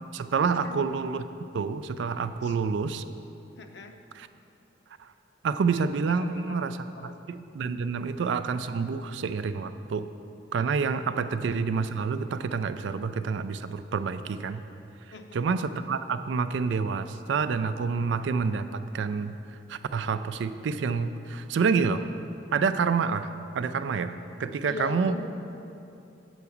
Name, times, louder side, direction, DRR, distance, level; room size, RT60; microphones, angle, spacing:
voice 1, 0.1-1.3 1.5-3.0 4.1-4.3 5.0-5.1 5.4-10.1 10.5-14.6 15.3-19.4 19.7-22.1 22.5-23.3 23.5-25.2, right 5 dB, 70° right, 11 dB, 0.3 m, -28 dB
voice 2, 3.6-3.9 6.2-6.7 6.9-7.1 11.1-11.2 15.1-15.4 24.7-25.2, left 4 dB, 60° left, 6 dB, 0.6 m, -40 dB
7.9 x 4.8 x 7.0 m, 2.7 s
head